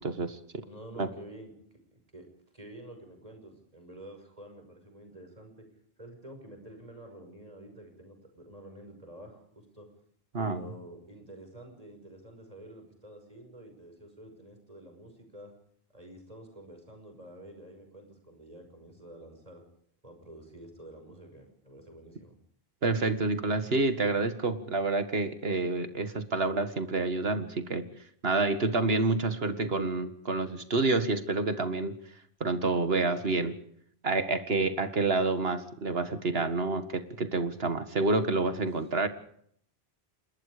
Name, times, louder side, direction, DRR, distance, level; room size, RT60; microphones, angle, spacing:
voice 1, 0.0-0.4 1.0-1.1 10.3-10.6 22.8-27.9 28.2-32.0 32.4-33.6 34.0-39.1, right 3 dB, 70° right, 10 dB, 2.1 m, -28 dB
voice 2, 0.6-1.5 1.9-2.3 2.5-5.7 6.0-9.9 10.4-15.5 15.9-19.6 20.0-22.3, right 1 dB, 35° right, 5 dB, 6.0 m, -49 dB
27.5 x 21.5 x 5.1 m, 0.66 s
omnidirectional pair, 1.1 m